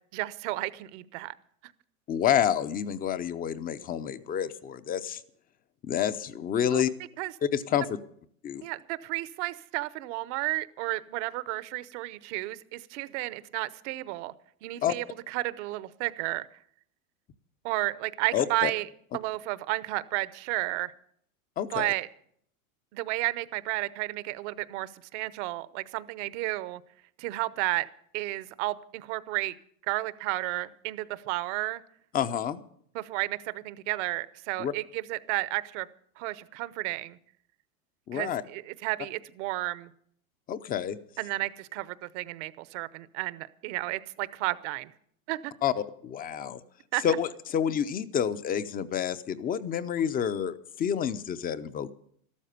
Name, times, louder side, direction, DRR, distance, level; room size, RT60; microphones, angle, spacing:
voice 1, 0.1-1.3 1.6-1.7 6.7-6.8 7.2-7.3 8.6-14.3 14.6-16.5 17.6-18.9 19.1-20.9 21.7-22.1 22.9-26.8 27.2-27.9 28.1-29.5 29.9-31.8 32.9-35.9 36.2-37.2 38.1-39.9 41.2-44.9 45.3-45.5 46.9-47.0, right 19 dB, 55° right, 17 dB, 0.9 m, -32 dB
voice 2, 2.1-5.2 5.8-6.9 7.5-7.9 8.4-8.6 14.8-14.9 18.3-18.7 21.6-21.9 32.1-32.6 34.6-34.7 38.1-38.4 40.5-41.0 45.6-46.6 47.0-51.9, left 9 dB, 20° left, 14 dB, 0.6 m, -28 dB
13.5 x 12.5 x 6.7 m, 0.65 s
supercardioid pair, 135°, 42 cm